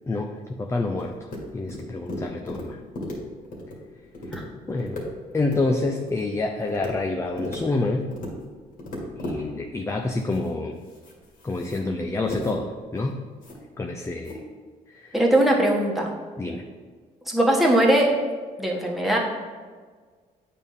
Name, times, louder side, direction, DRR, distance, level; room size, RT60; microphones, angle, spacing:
voice 1, 0.1-1.3 1.5-2.8 4.7-5.1 5.3-8.1 9.2-10.8 11.4-13.2 13.8-14.4 14.9-15.2 16.4-16.6, left 2 dB, 15° left, 3 dB, 0.5 m, -27 dB
sound 1, 0.9-1.4 1.7-2.6 2.9-3.2 3.4-3.7 4.0-4.4 4.7-5.0 5.3-5.6 5.9-6.2 6.6-6.9 7.2-7.6 8.0-8.3 8.7-9.4 10.0-10.5 10.8-11.8 12.3-12.6 12.9-13.0 13.4-13.6 14.2-14.4, left 1 dB, 60° left, 2.2 m, -36 dB
voice 2, 15.1-16.1 17.3-18.1 18.6-19.2, right 1 dB, ahead, -2 dB, 1.5 m, -20 dB
8.5 x 3.6 x 5.6 m, 1.6 s
cardioid pair, 90°, 16 cm